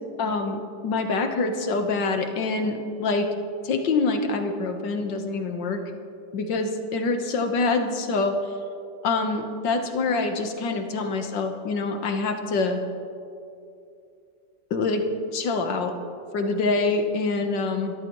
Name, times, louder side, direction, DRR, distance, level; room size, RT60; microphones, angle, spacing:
voice 1, 0.2-0.6 0.8-3.3 3.6-5.8 6.3-8.4 9.0-12.8 14.7-15.0 15.3-16.0 16.3-17.9, left 3 dB, 80° left, 5 dB, 1.9 m, -25 dB
27.0 x 13.5 x 3.1 m, 2.6 s
omnidirectional pair, 1.9 m